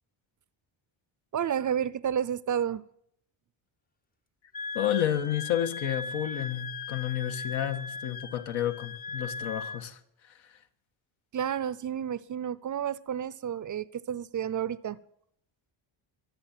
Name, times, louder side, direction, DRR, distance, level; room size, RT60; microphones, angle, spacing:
voice 1, 1.3-2.8 11.3-15.0, right 9 dB, 40° right, 0.5 m, -31 dB
Wind instrument woodwind instrument, 4.5-9.8, left 5 dB, 20° left, 0.6 m, -38 dB
voice 2, 4.7-10.0, left 10 dB, 75° left, 1.5 m, -30 dB
23.5 x 8.2 x 7.4 m
cardioid pair, 130°, 48 cm